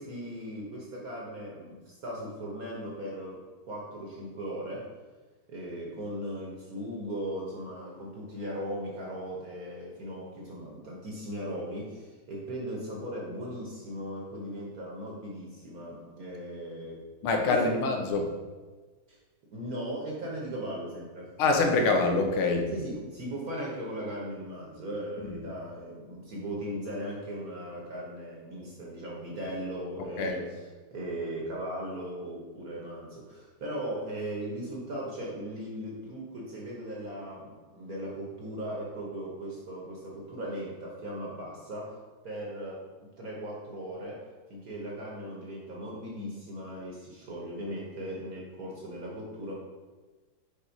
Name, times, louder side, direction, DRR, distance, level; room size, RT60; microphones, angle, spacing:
voice 1, 0.0-3.4 3.7-4.9 5.5-17.1 17.5-17.9 19.1-19.2 19.5-21.3 22.7-30.5 30.9-42.0 42.2-42.9 43.2-49.5, right 1 dB, 50° right, -3 dB, 1.3 m, -38 dB
voice 2, 17.2-18.4 21.4-22.7 30.2-30.4, left 3 dB, 80° left, 3 dB, 1.7 m, -25 dB
5.3 x 4.5 x 4.5 m, 1.3 s
omnidirectional pair, 2.3 m